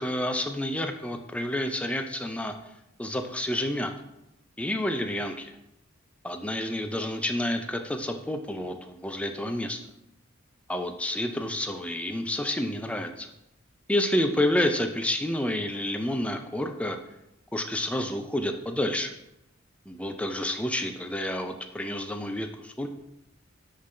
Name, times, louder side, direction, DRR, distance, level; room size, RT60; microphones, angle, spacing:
voice 1, 0.0-2.5 3.0-3.9 4.6-5.6 6.2-9.8 10.7-13.3 13.9-17.0 17.5-19.1 19.9-22.9, left 1 dB, 5° left, 5 dB, 0.4 m, -29 dB
9.7 x 3.7 x 3.2 m, 0.85 s
head